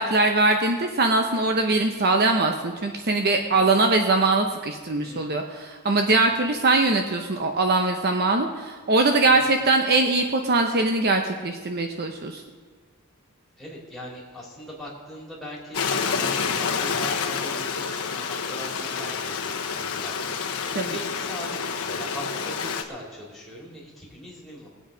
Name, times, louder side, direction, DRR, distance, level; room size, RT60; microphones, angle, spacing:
voice 1, 0.0-12.4 20.7-21.0, right 2 dB, 45° right, 4 dB, 0.8 m, -22 dB
voice 2, 3.5-3.9 5.0-5.4 6.2-6.3 9.3-9.4 13.6-20.3 20.9-24.7, equal, ahead, -5 dB, 3.3 m, -40 dB
Stream, 15.7-22.8, left 6 dB, 80° left, 1.2 m, -28 dB
20.5 x 8.3 x 5.1 m, 1.5 s
head